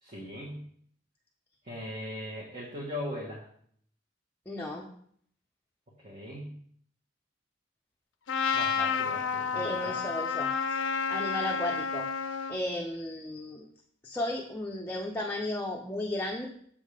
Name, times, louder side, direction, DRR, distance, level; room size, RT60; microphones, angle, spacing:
voice 1, 0.0-0.7 1.6-3.5 6.0-6.5 8.5-10.0, left 1 dB, 40° right, -4 dB, 1.3 m, -39 dB
voice 2, 4.5-4.9 9.5-10.8 11.1-12.1 12.5-13.6 14.0-16.5, left 1 dB, 10° left, -1 dB, 0.6 m, -34 dB
Trumpet, 8.3-12.6, left 5 dB, 85° left, 0.5 m, -30 dB
7.2 x 3.7 x 4.9 m, 0.63 s
head